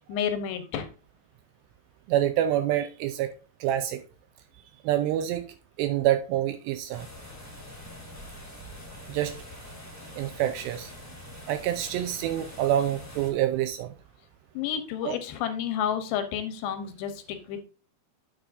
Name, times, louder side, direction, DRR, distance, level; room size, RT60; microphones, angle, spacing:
voice 1, 0.1-0.9 14.6-17.6, left 8 dB, 75° left, 2.9 m, -30 dB
voice 2, 2.1-3.3 3.6-4.0 4.8-5.5 5.8-7.1 9.1-9.3 10.2-10.9 11.5-13.9 15.0-15.2, right 12 dB, 85° right, 2.5 m, -26 dB
sound 1, 6.9-13.3, left 1 dB, 5° left, 2.2 m, -44 dB
11.0 x 6.9 x 2.6 m
omnidirectional pair, 5.3 m